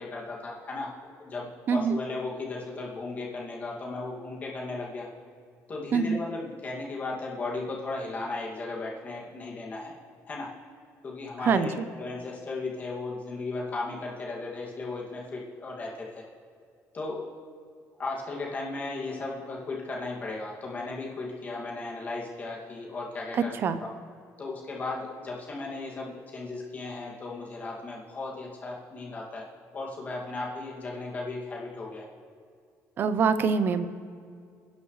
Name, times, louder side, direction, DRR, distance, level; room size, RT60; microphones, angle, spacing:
voice 1, 0.0-5.1 5.7-9.9 10.3-10.5 11.0-16.2 16.9-17.3 18.0-23.5 23.8-23.9 24.4-32.1, left 3 dB, 30° left, -3 dB, 2.2 m, -36 dB
voice 2, 1.7-2.0 5.9-6.2 11.4-11.7 23.3-23.8 33.0-33.9, right 5 dB, 40° right, 11 dB, 0.7 m, -24 dB
26.0 x 10.5 x 3.2 m, 2.2 s
cardioid pair, 170°, 6 cm